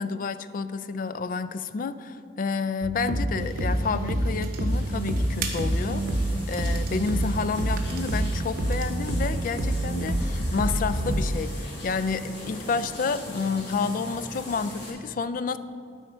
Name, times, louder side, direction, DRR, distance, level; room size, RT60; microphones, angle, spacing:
voice 1, 0.0-15.6, left 4 dB, 50° left, 13 dB, 0.3 m, -30 dB
sound 1, 2.8-11.4, right 1 dB, 90° right, 0.8 m, -27 dB
sound 2, 3.4-8.9, right 4 dB, 55° right, 1.0 m, -41 dB
sound 3, 4.7-14.9, left 1 dB, 65° left, 1.9 m, -41 dB
12.0 x 5.0 x 4.3 m, 2.5 s
head